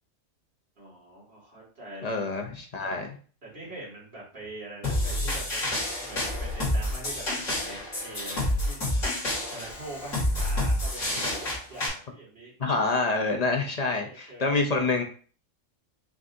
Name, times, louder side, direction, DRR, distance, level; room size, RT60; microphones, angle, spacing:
voice 1, 0.8-2.2 2.8-2.9 3.4-5.6 6.0-8.9 9.5-13.0 14.0-14.5, right 2 dB, 50° right, -6 dB, 2.2 m, -43 dB
voice 2, 2.0-3.1 12.6-15.0, left 3 dB, 45° left, 2 dB, 0.6 m, -27 dB
sound 1, 4.8-11.9, left 1 dB, 80° left, 2.4 m, -29 dB
5.9 x 2.7 x 2.5 m, 0.41 s
omnidirectional pair, 1.3 m